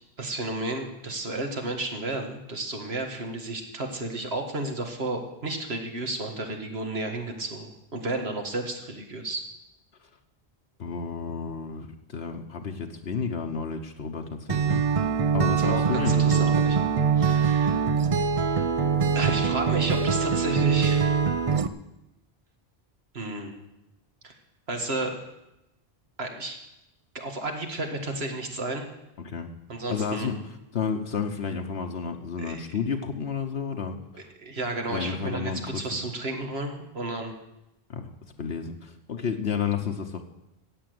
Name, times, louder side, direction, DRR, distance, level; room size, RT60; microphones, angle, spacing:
voice 1, 0.2-9.4 15.6-16.8 17.2-17.8 19.1-21.3 23.1-23.5 24.2-24.3 24.7-25.1 26.2-26.6 27.1-28.9 29.7-30.3 32.4-32.8 34.1-37.3, right 2 dB, 75° right, 4 dB, 2.1 m, -32 dB
voice 2, 10.8-14.8 15.3-16.6 29.2-29.5 29.9-30.3 30.7-34.0 34.9-35.8 37.9-38.0 38.4-40.2, left 6 dB, 80° left, 3 dB, 1.2 m, -31 dB
Acoustic guitar, 14.5-21.7, right 6 dB, 40° right, 0.6 m, -23 dB
14.0 x 8.7 x 7.8 m, 0.93 s
omnidirectional pair, 1.1 m